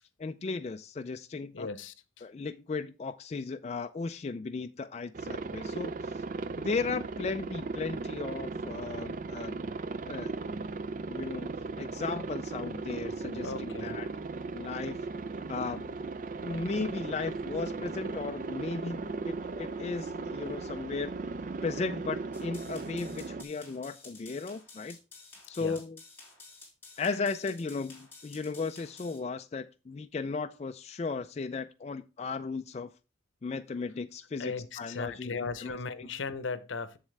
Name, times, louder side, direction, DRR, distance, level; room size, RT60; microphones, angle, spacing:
voice 1, 0.2-1.7 2.2-6.2 6.6-9.6 10.0-10.3 11.1-11.5 11.8-14.1 14.5-15.0 15.5-15.9 16.4-21.1 21.6-25.0 25.5-26.0 27.0-32.9 33.4-35.8, left 4 dB, 35° left, 0.3 m, -36 dB
voice 2, 1.5-2.3 13.4-14.0 25.6-25.8 34.4-37.0, left 4 dB, 80° left, 0.7 m, -37 dB
Aircraft, 5.1-23.4, right 3 dB, 45° right, 0.4 m, -37 dB
sound 1, 22.3-29.2, left 3 dB, 10° left, 3.7 m, -52 dB
7.3 x 7.3 x 3.2 m
head